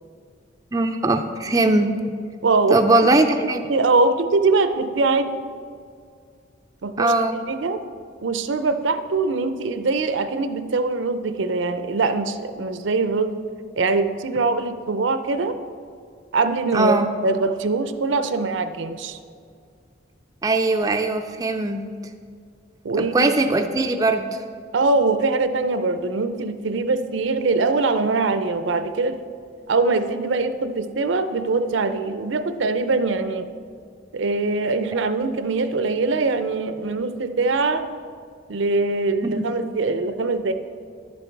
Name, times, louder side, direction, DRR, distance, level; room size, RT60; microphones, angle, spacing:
voice 1, 0.7-2.0 2.7-3.7 7.0-7.4 16.7-17.1 20.4-21.8 23.0-24.3 39.2-39.5, right 2 dB, 20° right, 6 dB, 0.4 m, -20 dB
voice 2, 2.4-2.8 3.2-3.3 3.7-5.3 6.8-7.1 7.5-7.8 8.2-13.4 13.8-15.6 16.3-19.2 22.8-23.3 24.7-29.2 29.7-33.5 34.1-37.9 38.5-40.5, right 3 dB, 80° right, 10 dB, 0.5 m, -22 dB
10.5 x 7.0 x 4.6 m, 2.2 s
head